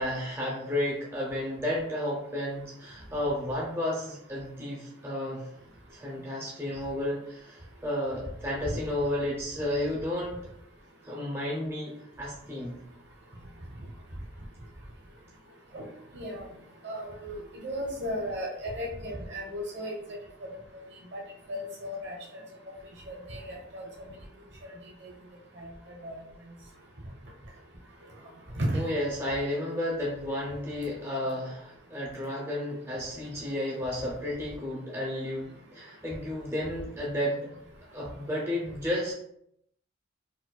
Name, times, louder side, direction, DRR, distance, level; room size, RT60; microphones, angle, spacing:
voice 1, 0.0-5.5 5.9-10.4 11.0-12.8 28.7-37.5 37.9-39.1, left 1 dB, 15° right, -4 dB, 0.5 m, -32 dB
voice 2, 16.1-16.4 16.8-19.9 21.1-21.2 21.5-22.2 23.1-23.8 25.6-25.7 26.0-26.2 28.6-28.8, equal, 60° right, -1 dB, 0.9 m, -34 dB
4.4 x 2.2 x 2.2 m, 0.74 s
head